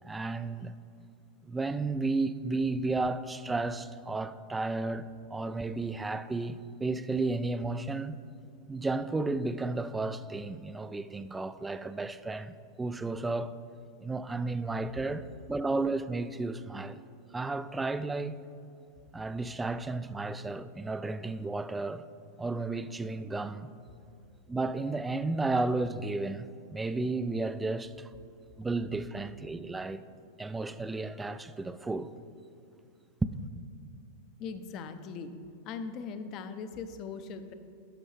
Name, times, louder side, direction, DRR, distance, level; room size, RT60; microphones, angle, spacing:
voice 1, 0.0-0.7 1.4-8.2 8.7-13.5 14.0-17.0 17.3-18.4 19.1-22.0 22.4-23.7 24.5-28.1 28.6-30.0 30.4-32.1 33.2-33.3, right 3 dB, 10° right, 0.3 m, -33 dB
voice 2, 34.4-35.3 35.6-37.5, left 5 dB, 45° left, 0.6 m, -40 dB
12.5 x 5.4 x 3.3 m
hypercardioid pair, 100°, 0 cm